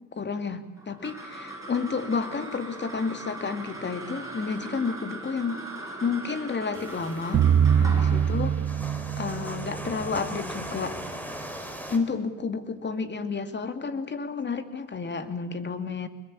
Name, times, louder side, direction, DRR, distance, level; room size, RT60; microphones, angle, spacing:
voice 1, 0.1-5.6 6.0-7.4 7.8-8.6 9.2-11.0 11.9-16.1, left 5 dB, 35° left, 9 dB, 2.5 m, -31 dB
sound 1, 0.8-11.4, right 2 dB, 10° right, 7.4 m, -41 dB
sound 2, 6.7-12.0, equal, 5° left, 4.6 m, -39 dB
sound 3, 7.3-10.4, right 8 dB, 55° right, 0.9 m, -24 dB
25.0 x 21.5 x 8.7 m, 1.2 s
cardioid pair, 90°, 30 cm